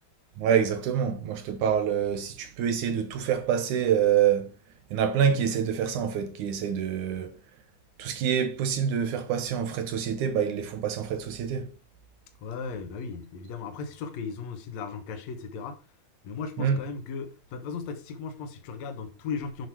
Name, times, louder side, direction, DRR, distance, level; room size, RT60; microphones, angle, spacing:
voice 1, 0.4-4.5 4.9-7.4 8.0-11.7 16.6-16.8, right 8 dB, 70° right, 1.9 m, -26 dB
voice 2, 12.4-15.8 16.2-19.7, left 5 dB, 55° left, 2.2 m, -36 dB
8.1 x 6.2 x 4.5 m
omnidirectional pair, 4.4 m